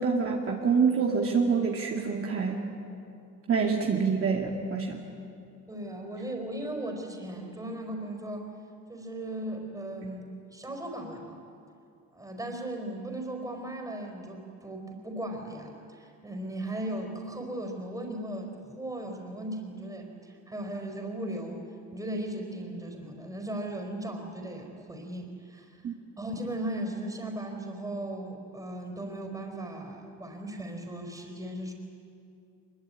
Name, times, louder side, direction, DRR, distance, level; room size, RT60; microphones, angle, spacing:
voice 1, 0.0-2.6 3.5-5.0 25.8-26.0, right 5 dB, 50° right, 0 dB, 2.4 m, -26 dB
voice 2, 5.7-8.5 8.9-11.4 12.1-21.6 21.9-25.8 26.2-31.7, right 1 dB, 10° right, 2 dB, 4.4 m, -37 dB
23.5 x 22.5 x 9.7 m, 2.6 s
cardioid pair, 120°, 30 cm